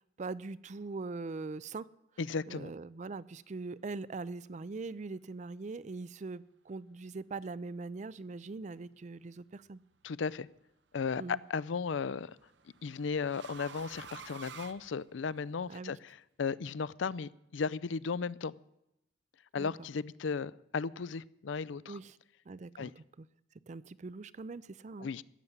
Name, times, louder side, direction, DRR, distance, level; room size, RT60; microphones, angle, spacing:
voice 1, 0.0-1.9 2.5-9.8 11.2-11.4 15.7-15.9 19.6-19.9 21.9-22.2 22.5-23.3 23.7-25.1, right 3 dB, 40° right, 0.4 m, -42 dB
voice 2, 2.2-2.7 10.0-10.5 10.9-12.4 12.8-18.5 19.5-22.0 22.8-22.9 25.0-25.2, left 5 dB, 80° left, 0.5 m, -35 dB
sound 1, 9.7-10.2 11.6-15.6, right 6 dB, 65° right, 0.8 m, -50 dB
15.0 x 7.1 x 9.5 m
head